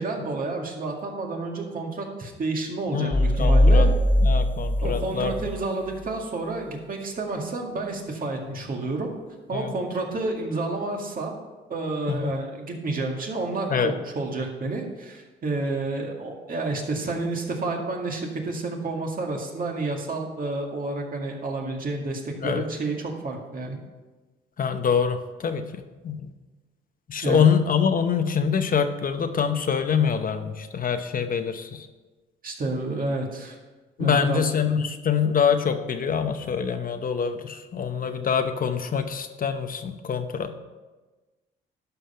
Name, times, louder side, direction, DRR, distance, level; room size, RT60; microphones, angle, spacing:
voice 1, 0.0-3.9 4.8-9.1 9.5-11.3 11.7-23.8 27.2-27.5 32.4-33.6 34.0-34.4 34.8-34.9, right 2 dB, 45° right, 1 dB, 2.0 m, -30 dB
voice 2, 2.9-3.9 4.2-5.3 8.5-8.6 9.5-9.7 12.1-12.3 13.7-13.9 22.4-22.6 24.6-26.3 27.1-31.9 34.0-40.6, left 7 dB, 45° left, 8 dB, 0.8 m, -25 dB
sound 1, 3.1-5.7, left 1 dB, 10° left, 0.3 m, -20 dB
11.5 x 5.6 x 5.6 m, 1.2 s
cardioid pair, 90°, 20 cm